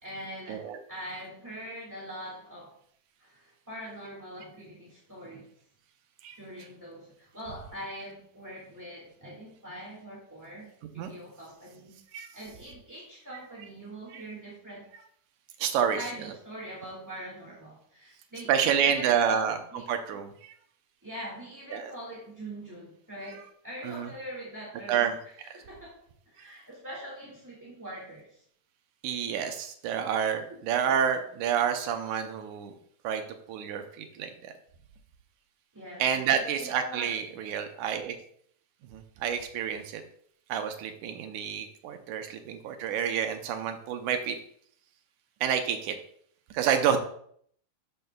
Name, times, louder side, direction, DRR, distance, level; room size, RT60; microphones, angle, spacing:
voice 1, 0.0-2.7 3.2-5.5 6.3-12.0 12.3-14.9 15.9-19.5 19.7-19.9 21.0-26.0 26.3-28.4 30.5-30.6 35.7-37.1, equal, 10° right, -6 dB, 1.2 m, -43 dB
voice 2, 15.6-16.0 18.5-19.6 19.9-20.5 21.7-21.9 23.3-23.4 23.8-24.1 24.9-25.2 26.4-26.5 29.0-32.7 33.0-34.5 36.0-38.2 38.9-40.0 40.5-44.4 45.4-46.0 46.5-47.0, right 8 dB, 85° right, 6 dB, 2.2 m, -29 dB
12.0 x 6.7 x 2.3 m, 0.64 s
omnidirectional pair, 3.4 m